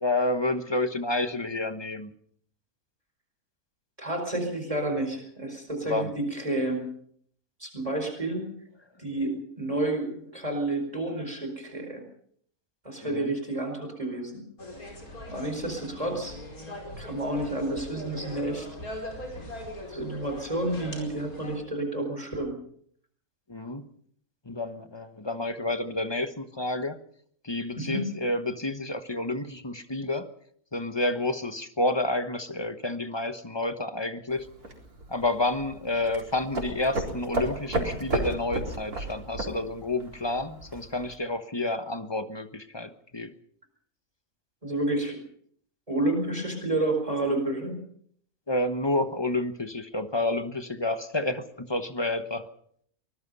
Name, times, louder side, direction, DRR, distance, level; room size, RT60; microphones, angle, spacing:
voice 1, 0.0-2.1 5.8-6.1 13.0-13.4 23.5-23.9 24.4-27.0 27.4-30.3 30.7-34.5 35.1-43.3 48.5-52.5, left 2 dB, 20° left, 9 dB, 1.2 m, -29 dB
voice 2, 4.0-6.9 7.6-8.5 9.0-12.0 12.8-14.4 15.2-16.4 17.0-18.7 19.9-22.6 27.8-28.1 44.6-45.2 45.9-47.8, right 2 dB, 25° right, 4 dB, 4.9 m, -30 dB
sound 1, 14.6-21.6, left 1 dB, 75° left, 5.4 m, -41 dB
sound 2, 34.3-41.1, right 2 dB, 90° right, 4.6 m, -34 dB
24.0 x 20.5 x 5.5 m, 0.64 s
omnidirectional pair, 1.5 m